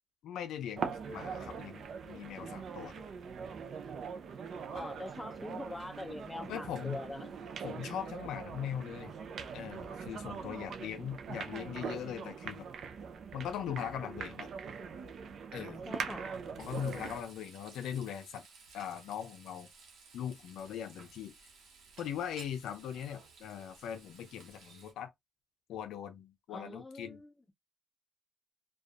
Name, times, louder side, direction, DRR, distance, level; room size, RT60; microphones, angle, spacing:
voice 1, 0.2-3.0 6.5-7.0 7.6-9.2 9.5-12.7 13.3-14.5 15.5-15.8 16.6-18.5 18.7-19.7 20.1-21.3 22.0-25.1 25.7-27.2, left 9 dB, 80° left, 0.4 m, -40 dB
sound 1, 0.8-17.3, right 6 dB, 60° right, 0.5 m, -42 dB
voice 2, 4.7-7.3 15.9-16.4 26.5-27.3, left 2 dB, 10° left, 0.5 m, -43 dB
Frying (food), 16.6-24.9, right 4 dB, 80° right, 0.9 m, -57 dB
2.5 x 2.3 x 2.3 m
cardioid pair, 90°, 0 cm